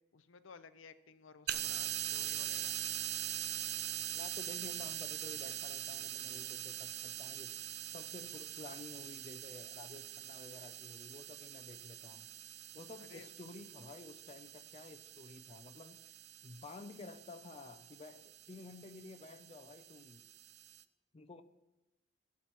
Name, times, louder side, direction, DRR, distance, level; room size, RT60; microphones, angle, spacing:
voice 1, 0.1-2.7 13.0-13.3, left 5 dB, 85° left, 12 dB, 0.6 m, -55 dB
sound 1, 1.5-20.8, right 11 dB, 55° right, 0.4 m, -43 dB
voice 2, 3.9-7.5 7.9-12.3 12.7-16.1 16.4-20.3 21.1-21.4, left 3 dB, 30° left, 8 dB, 0.4 m, -52 dB
18.5 x 8.3 x 3.0 m, 0.99 s
head